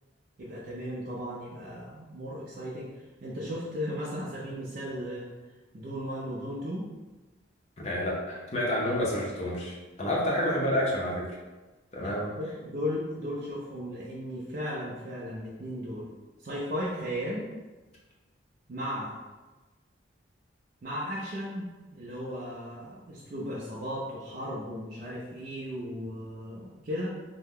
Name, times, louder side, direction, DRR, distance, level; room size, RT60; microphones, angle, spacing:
voice 1, 0.4-2.9 3.2-5.3 5.7-6.9 10.0-10.2 12.0-16.1 16.4-17.5 18.7-19.2 20.8-27.1, equal, 45° right, -6 dB, 0.4 m, -36 dB
voice 2, 7.8-11.4 11.9-12.3, left 1 dB, 35° left, -4 dB, 0.6 m, -29 dB
2.7 x 2.1 x 3.5 m, 1.2 s
head